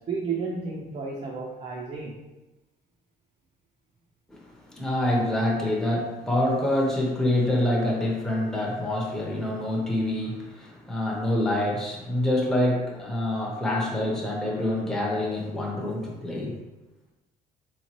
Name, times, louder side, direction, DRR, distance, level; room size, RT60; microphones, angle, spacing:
voice 1, 0.0-2.2, right 4 dB, 40° right, -2 dB, 0.5 m, -32 dB
voice 2, 4.3-16.6, left 1 dB, 5° left, -2 dB, 0.6 m, -26 dB
3.5 x 3.0 x 2.9 m, 1.1 s
cardioid pair, 110°, 17 cm